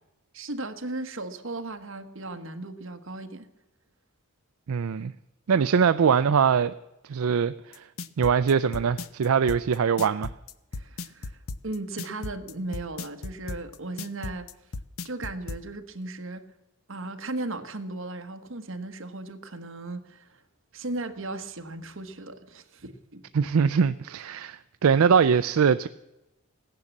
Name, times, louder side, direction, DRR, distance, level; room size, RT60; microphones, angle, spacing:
voice 1, 0.3-3.5 10.7-11.4 11.6-14.5 15.0-16.4 16.9-20.4 20.7-23.2, right 2 dB, 60° right, 1.3 m, -36 dB
voice 2, 4.7-5.1 5.5-6.7 7.1-7.8 8.2-10.3 23.3-25.9, right 6 dB, 80° right, 0.4 m, -22 dB
sound 1, 7.7-15.6, left 3 dB, 75° left, 0.7 m, -36 dB
16.0 x 10.5 x 7.3 m
head